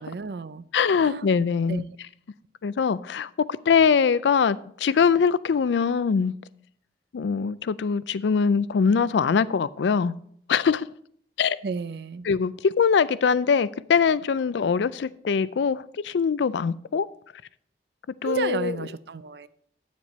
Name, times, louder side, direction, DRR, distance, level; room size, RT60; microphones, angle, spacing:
voice 1, 0.0-0.6 0.9-1.8 11.6-12.3 18.2-19.5, right 5 dB, 60° right, 0.4 m, -33 dB
voice 2, 0.7-1.8 2.6-6.3 7.1-10.2 10.5-10.9 11.4-11.6 12.3-17.1 18.2-18.7, left 6 dB, 75° left, 0.4 m, -22 dB
9.7 x 7.3 x 4.1 m
head